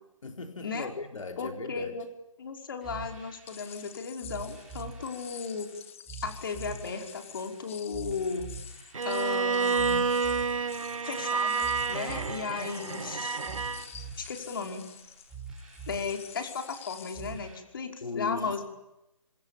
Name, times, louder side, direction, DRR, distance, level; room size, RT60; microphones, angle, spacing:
voice 1, 0.2-2.0 18.0-18.6, left 4 dB, 70° left, 5 dB, 4.0 m, -38 dB
voice 2, 1.4-2.1 2.4-5.7 6.2-8.5 9.0-10.1 11.0-13.4 14.2-14.8 15.9-18.6, left 5 dB, 40° left, 4 dB, 5.3 m, -35 dB
sound 1, 2.8-17.6, right 5 dB, 5° right, 6.3 m, -46 dB
sound 2, 3.5-17.4, left 9 dB, 25° left, 1.5 m, -48 dB
Bowed string instrument, 8.9-13.9, right 5 dB, 75° right, 1.6 m, -29 dB
29.5 x 26.5 x 7.5 m, 0.88 s
hypercardioid pair, 170°, 17 cm